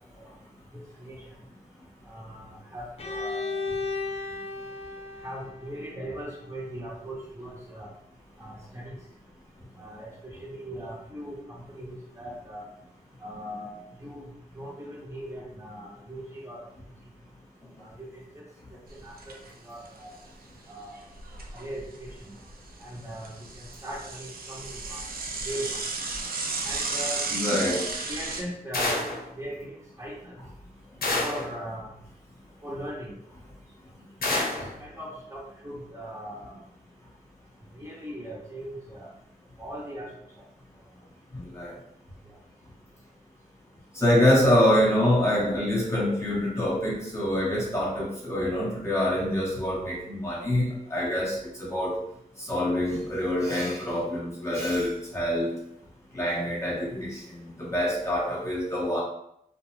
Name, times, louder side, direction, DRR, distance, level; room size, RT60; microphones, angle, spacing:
voice 1, 2.1-3.5 5.2-7.9 8.4-9.0 9.8-12.6 13.2-14.2 14.5-16.7 17.8-18.4 18.9-19.3 19.6-20.2 20.7-21.0 21.5-22.3 22.8-25.1 25.4-25.8 26.6-27.8 28.1-29.1 29.4-30.3 31.2-31.9 32.6-33.1 34.8-36.6 37.7-39.1 39.6-40.1, equal, 20° right, -6 dB, 1.1 m, -39 dB
Bowed string instrument, 3.0-6.8, left 3 dB, 45° left, 0.5 m, -35 dB
Bicycle / Mechanisms, 18.9-19.5 19.8-19.9 20.2-20.3 20.9-22.1 22.5-28.4, right 3 dB, 80° right, 0.4 m, -33 dB
voice 2, 27.3-27.8 41.3-41.7 43.9-52.0 52.4-55.5 56.1-59.0, left 1 dB, 20° left, -6 dB, 1.2 m, -25 dB
sound 1, 28.7-29.3 31.0-31.5 34.2-34.7, left 2 dB, 80° left, 0.7 m, -27 dB
2.4 x 2.3 x 3.1 m, 0.75 s
cardioid pair, 60°, 15 cm